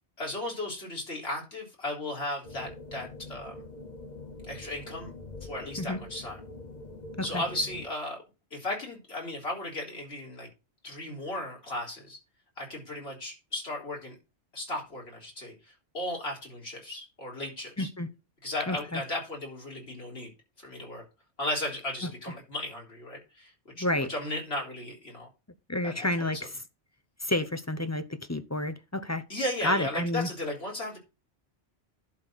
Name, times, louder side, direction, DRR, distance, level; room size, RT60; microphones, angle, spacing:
voice 1, 0.2-3.6 4.5-5.1 5.4-6.4 7.2-8.2 8.5-10.5 10.8-12.2 12.6-14.1 14.5-17.9 18.4-20.3 20.6-21.0 21.4-25.3 25.8-26.5 29.3-31.0, left 1 dB, 70° left, 3.9 m, -35 dB
sound 1, 2.4-7.9, left 2 dB, 45° left, 1.0 m, -44 dB
voice 2, 17.8-18.1 18.7-19.0 23.8-24.1 25.7-26.4 27.2-29.2 29.6-30.3, left 1 dB, 20° left, 0.6 m, -30 dB
11.0 x 4.2 x 6.3 m
omnidirectional pair, 1.1 m